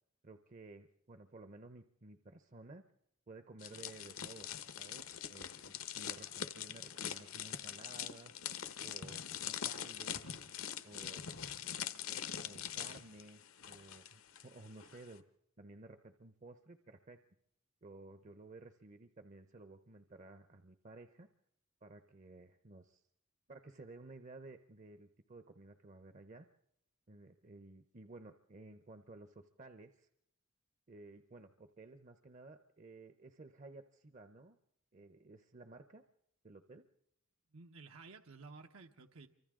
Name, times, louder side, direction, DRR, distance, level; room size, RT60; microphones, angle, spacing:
voice 1, 0.2-2.8 3.3-4.5 4.8-8.3 8.8-10.3 10.8-11.2 12.1-13.4 13.7-15.2 15.6-17.2 17.8-21.3 21.8-23.0 23.5-26.5 27.1-30.1 30.9-34.6 34.9-36.0 36.4-36.8, right 2 dB, 35° right, 9 dB, 0.7 m, -55 dB
sound 1, 3.6-14.4 14.7-15.0, left 9 dB, 80° left, 1.1 m, -43 dB
voice 2, 37.5-39.3, right 4 dB, 80° right, 4 dB, 1.0 m, -54 dB
28.5 x 24.5 x 3.7 m, 0.78 s
head